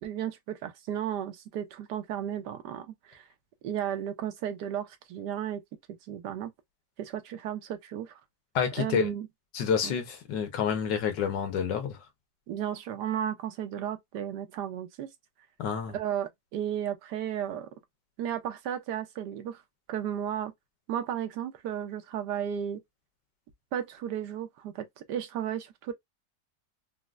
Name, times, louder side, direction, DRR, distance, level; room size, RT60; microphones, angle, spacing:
voice 1, 0.0-3.2 3.6-5.6 6.1-6.5 7.0-8.1 8.8-9.3 9.8-9.9 12.5-15.1 15.9-17.7 18.2-19.6 19.9-20.5 20.9-22.8 23.7-25.9, right 10 dB, 75° right, 1.3 m, -34 dB
voice 2, 8.5-9.1 9.5-12.0 15.6-15.9, left 7 dB, 90° left, 1.5 m, -28 dB
4.2 x 2.1 x 2.3 m
omnidirectional pair, 1.8 m